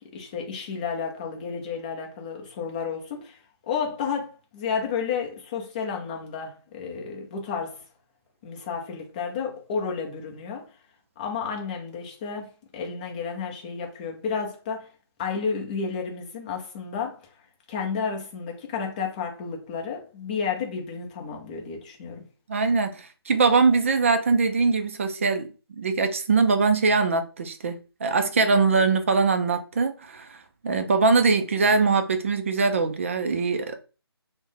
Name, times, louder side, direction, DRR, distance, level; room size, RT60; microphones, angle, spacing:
voice 1, 0.0-7.8 8.4-10.7 11.2-14.9 15.2-17.2 17.7-22.3, left 6 dB, 20° left, 0.6 m, -31 dB
voice 2, 22.5-25.5 25.8-27.8 28.0-30.4 30.6-33.8, right 4 dB, 30° right, 0.3 m, -22 dB
3.4 x 2.1 x 3.2 m
figure-of-eight pair, 155°, 14 cm